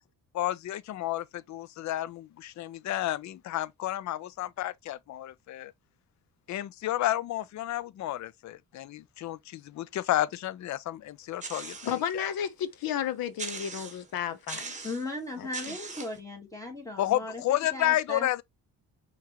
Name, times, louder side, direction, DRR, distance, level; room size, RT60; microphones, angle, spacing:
voice 1, 0.3-5.7 6.5-12.3 17.0-18.4, left 14 dB, 50° left, 0.4 m, -31 dB
sound 1, 11.4-12.1 12.6-12.7 13.4-14.1 14.5-15.1 15.5-16.2, right 4 dB, 20° right, 1.3 m, -40 dB
voice 2, 11.9-14.8 15.4-15.8, left 9 dB, 70° left, 0.8 m, -33 dB
voice 3, 14.8-18.4, left 2 dB, 10° left, 2.1 m, -37 dB
5.8 x 3.1 x 2.9 m
cardioid pair, 120°, 36 cm